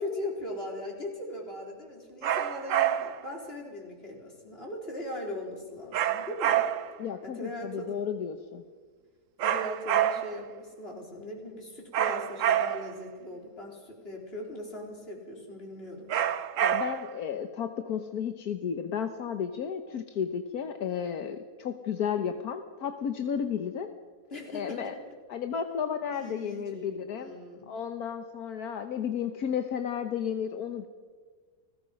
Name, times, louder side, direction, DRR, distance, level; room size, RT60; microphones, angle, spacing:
voice 1, 0.0-6.6 7.2-8.1 9.4-16.1 24.3-25.1 26.1-27.8, left 1 dB, 40° left, 0 dB, 4.7 m, -39 dB
sound 1, 2.2-3.3 5.9-7.0 9.4-10.5 11.9-13.0 16.1-17.2, right 10 dB, 60° right, 1.1 m, -27 dB
voice 2, 7.0-8.6 16.6-23.9 24.5-24.9 25.3-27.4 27.7-30.9, left 8 dB, 75° left, 7 dB, 1.6 m, -33 dB
30.0 x 20.0 x 5.3 m, 1.5 s
omnidirectional pair, 1.6 m